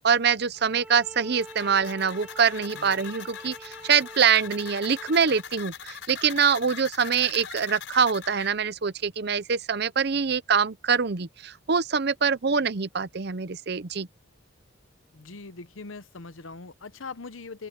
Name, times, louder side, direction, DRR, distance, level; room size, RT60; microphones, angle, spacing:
voice 1, 0.0-14.1, right 6 dB, 55° right, 0.7 m, -24 dB
sound 1, 0.5-5.5, right 1 dB, 10° right, 1.0 m, -46 dB
sound 2, 1.4-8.5, left 8 dB, 65° left, 5.7 m, -41 dB
voice 2, 15.1-17.7, left 4 dB, 85° left, 0.9 m, -41 dB
open air
head